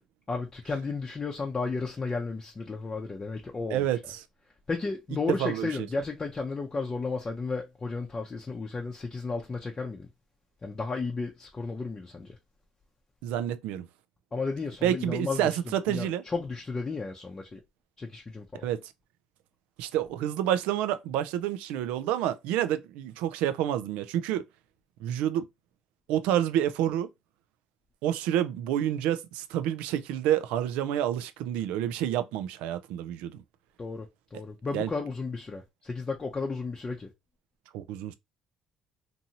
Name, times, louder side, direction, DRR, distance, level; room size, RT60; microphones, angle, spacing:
voice 1, 0.3-4.0 4.7-10.1 10.6-12.4 14.3-17.6 18.0-18.7 33.8-37.1, left 4 dB, 25° left, 0.6 m, -33 dB
voice 2, 3.7-4.2 5.4-5.7 13.2-13.9 14.8-16.2 18.6-18.8 19.8-24.4 25.0-25.4 26.1-27.1 28.0-33.4 34.7-34.9 37.7-38.2, right 11 dB, 85° right, 0.3 m, -28 dB
2.7 x 2.6 x 2.8 m
cardioid pair, 85°, 2 cm